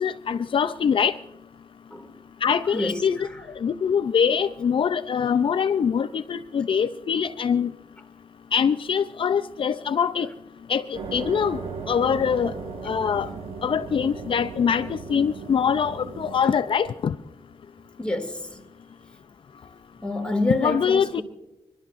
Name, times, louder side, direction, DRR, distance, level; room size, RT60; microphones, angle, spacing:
voice 1, 0.0-1.1 2.4-3.2 3.6-7.7 8.5-10.3 10.7-11.6 11.9-12.5 12.8-13.3 13.6-17.1 20.6-21.2, left 7 dB, 65° left, 0.5 m, -23 dB
voice 2, 2.7-3.1 18.0-18.6 20.0-21.2, left 2 dB, 10° left, 2.3 m, -27 dB
sound 1, 10.9-16.4, right 5 dB, 80° right, 4.1 m, -36 dB
28.5 x 12.0 x 2.5 m
cardioid pair, 65°, 10 cm